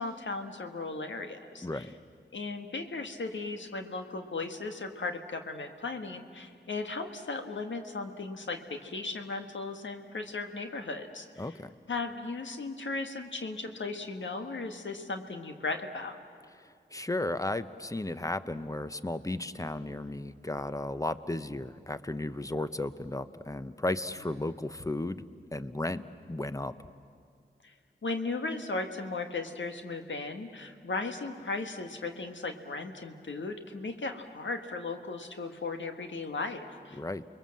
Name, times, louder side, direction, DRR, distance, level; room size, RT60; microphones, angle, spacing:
voice 1, 0.0-1.9 2.3-11.5 11.9-16.2 27.6-27.7 28.0-37.0, left 3 dB, 80° left, 6 dB, 1.6 m, -36 dB
voice 2, 1.6-1.9 11.4-11.7 16.9-25.2 25.5-26.0 26.3-26.7 36.9-37.2, left 2 dB, 15° left, 12 dB, 1.0 m, -34 dB
29.0 x 21.5 x 7.7 m, 2.2 s
cardioid pair, 45°, 19 cm